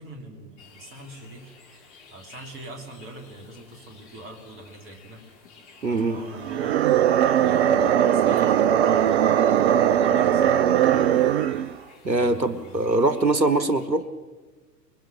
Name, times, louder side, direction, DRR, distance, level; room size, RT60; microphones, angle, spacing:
voice 1, 0.0-1.5 1.8-5.3 5.8-6.8 7.3-11.2 12.1-12.8, right 1 dB, 25° right, 3 dB, 3.6 m, -43 dB
sound 1, 0.6-13.9, left 5 dB, 40° left, 3.9 m, -50 dB
voice 2, 5.8-6.2 12.0-14.1, right 2 dB, 85° right, 12 dB, 1.4 m, -22 dB
sound 2, 6.4-11.7, right 10 dB, 40° right, 0.6 m, -20 dB
25.5 x 21.0 x 6.3 m, 1.4 s
figure-of-eight pair, 105°, 50 cm